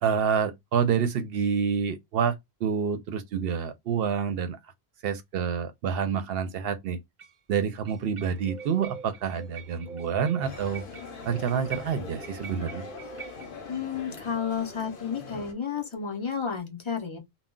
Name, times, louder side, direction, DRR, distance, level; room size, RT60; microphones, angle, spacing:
voice 1, 0.0-4.6 5.0-7.0 7.5-10.8 11.2-12.9, right 7 dB, 70° right, 0.7 m, -28 dB
sound 1, 5.0-5.1 7.2-7.4 7.9-13.6, right 7 dB, 50° right, 0.4 m, -47 dB
Bird, 8.3-16.6, right 4 dB, 5° right, 0.6 m, -47 dB
sound 2, 10.4-15.5, left 5 dB, 60° left, 0.8 m, -42 dB
voice 2, 13.7-17.2, left 6 dB, 35° left, 0.5 m, -31 dB
2.2 x 2.1 x 3.6 m
omnidirectional pair, 1.1 m